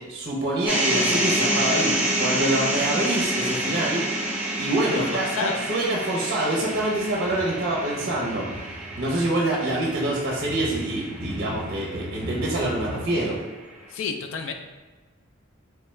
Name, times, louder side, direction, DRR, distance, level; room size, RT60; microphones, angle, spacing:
voice 1, 0.0-4.1 4.6-8.5 9.0-13.4, right 1 dB, 50° right, -3 dB, 0.6 m, -26 dB
sound 1, 0.7-12.8, right 1 dB, 10° right, 0.5 m, -28 dB
voice 2, 4.9-5.6 13.9-14.5, left 5 dB, 65° left, 5 dB, 0.3 m, -30 dB
sound 2, 6.4-13.4, equal, 30° left, 1.3 m, -39 dB
3.3 x 2.2 x 3.0 m, 1.3 s
head